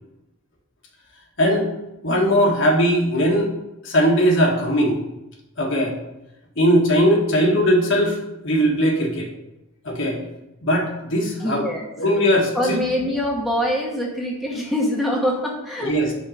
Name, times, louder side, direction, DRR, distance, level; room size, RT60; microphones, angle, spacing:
voice 1, 1.4-1.7 2.0-3.5 3.8-5.0 5.6-5.9 6.6-9.3 9.8-10.2 10.6-11.6 12.0-12.8 15.8-16.1, equal, 60° left, -1 dB, 1.5 m, -19 dB
voice 2, 11.4-11.8 12.5-15.9, equal, ahead, -3 dB, 1.0 m, -24 dB
5.5 x 4.7 x 6.4 m, 0.92 s
head